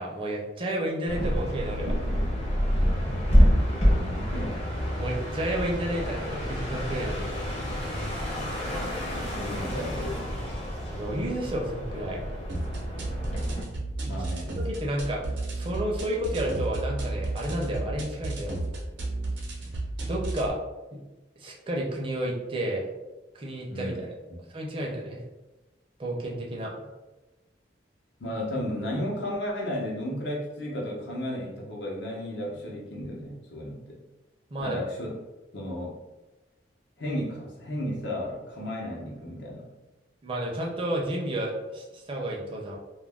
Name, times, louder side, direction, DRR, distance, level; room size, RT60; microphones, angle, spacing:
voice 1, 0.0-2.0 5.0-7.3 10.9-12.2 14.0-14.1 14.5-18.6 20.0-20.6 20.9-21.0 21.4-22.9 23.3-24.1 24.5-25.2 26.0-26.7 34.5-34.8 40.2-42.8, right 1 dB, 30° right, -1 dB, 0.5 m, -31 dB
sound 1, 1.1-13.6, equal, 35° left, 0.7 m, -27 dB
voice 2, 4.1-4.7 9.1-10.2 14.1-14.6 23.7-24.0 28.2-34.0 34.6-35.1 35.5-36.0 37.0-39.7, left 1 dB, 75° left, -3 dB, 0.8 m, -34 dB
sound 2, 12.5-20.5, right 2 dB, 80° right, 0.7 m, -33 dB
2.3 x 2.1 x 3.4 m, 1.1 s
head